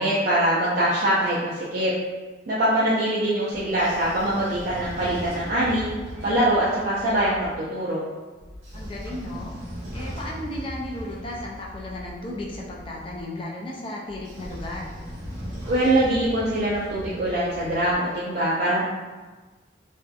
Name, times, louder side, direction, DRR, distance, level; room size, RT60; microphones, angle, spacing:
voice 1, 0.0-1.9 2.5-5.9 6.2-8.0 15.7-18.8, right 1 dB, 55° right, -8 dB, 0.4 m, -23 dB
Train / Sliding door, 3.5-7.5 8.4-13.2 14.1-17.9, equal, 90° right, 0.8 m, -39 dB
voice 2, 8.7-9.6 9.9-15.0, left 1 dB, 30° left, -3 dB, 0.3 m, -35 dB
2.6 x 2.3 x 2.3 m, 1.3 s
head